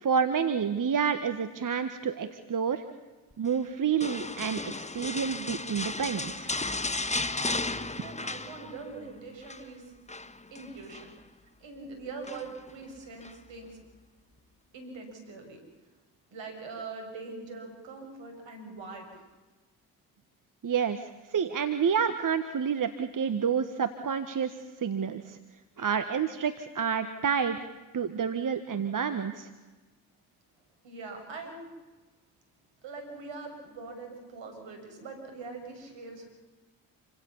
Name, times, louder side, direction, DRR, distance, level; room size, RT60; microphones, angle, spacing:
voice 1, 0.0-2.8 3.4-6.5 20.6-21.0 21.3-24.5 24.8-25.4 25.8-27.7 27.9-29.5, right 7 dB, 40° right, 10 dB, 1.6 m, -29 dB
sound 1, 4.0-9.0 9.3-9.6 10.1-11.1 12.2-12.7 13.2-13.4, left 2 dB, 15° left, 1.4 m, -34 dB
voice 2, 8.0-9.9 10.5-11.1 11.6-13.8 14.7-15.6 16.3-19.2 30.8-31.7 32.8-36.3, right 3 dB, 65° right, 4 dB, 6.9 m, -42 dB
28.0 x 17.0 x 7.2 m, 1.2 s
hypercardioid pair, 40°, 47 cm